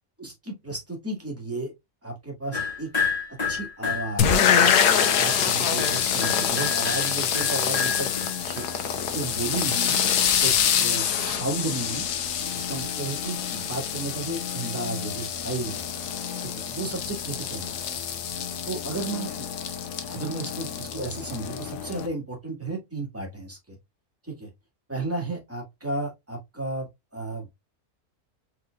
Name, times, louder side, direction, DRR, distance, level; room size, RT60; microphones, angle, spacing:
voice 1, 0.2-1.7 2.0-2.9 3.5-4.7 5.2-8.1 8.4-8.7 9.0-10.0 10.4-12.0 12.5-15.8 16.4-18.0 18.7-19.5 20.1-23.8 24.2-24.5 24.9-27.5, right 2 dB, 10° right, 1.8 m, -33 dB
sound 1, 2.5-8.8, left 5 dB, 25° left, 1.9 m, -31 dB
sound 2, 4.2-22.1, left 8 dB, 90° left, 1.4 m, -26 dB
4.4 x 4.0 x 2.4 m
omnidirectional pair, 1.6 m